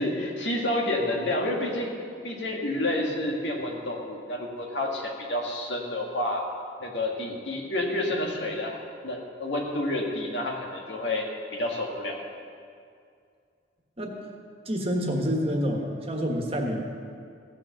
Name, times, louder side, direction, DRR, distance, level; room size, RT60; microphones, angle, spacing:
voice 1, 0.0-2.0 2.2-6.4 6.8-12.2, left 1 dB, 85° left, 0 dB, 1.8 m, -29 dB
voice 2, 14.6-16.8, equal, 35° right, 1 dB, 1.4 m, -28 dB
16.0 x 6.0 x 6.7 m, 2.3 s
head